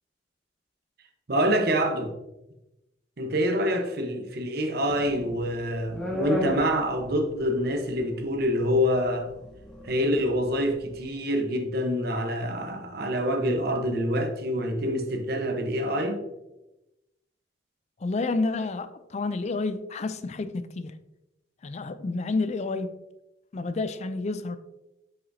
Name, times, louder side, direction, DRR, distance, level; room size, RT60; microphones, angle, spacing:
voice 1, 1.3-2.1 3.2-9.3 9.9-16.2, equal, 55° right, 0.9 m, -26 dB
sound 1, 4.8-11.0, left 2 dB, 5° left, 1.6 m, -35 dB
voice 2, 18.0-20.9 21.6-22.9 23.5-24.6, left 3 dB, 40° left, 0.4 m, -29 dB
7.8 x 5.8 x 2.7 m
head